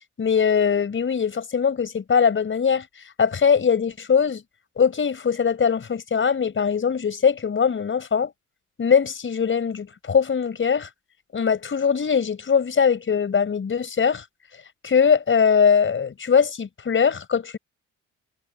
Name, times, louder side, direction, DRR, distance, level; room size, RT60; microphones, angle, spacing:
voice 1, 0.2-2.8 3.2-4.4 4.8-8.3 8.8-10.9 11.3-14.2 14.8-17.6, left 6 dB, 40° left, 5.0 m, -21 dB
cardioid pair, 90°, 30 cm